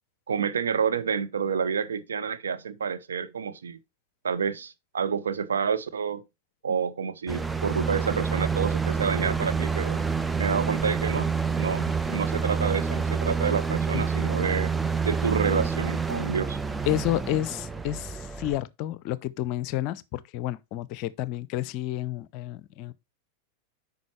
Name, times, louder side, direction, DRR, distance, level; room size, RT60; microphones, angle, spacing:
voice 1, 0.3-3.8 4.2-6.2 6.6-10.0 10.4-11.3 11.6-14.7 15.0-16.6, right 6 dB, 70° right, 0.8 m, -28 dB
sound 1, 7.3-18.6, right 5 dB, 10° right, 0.5 m, -28 dB
voice 2, 16.9-22.9, left 13 dB, 45° left, 0.5 m, -30 dB
9.3 x 5.2 x 3.2 m
figure-of-eight pair, 90°, 0 cm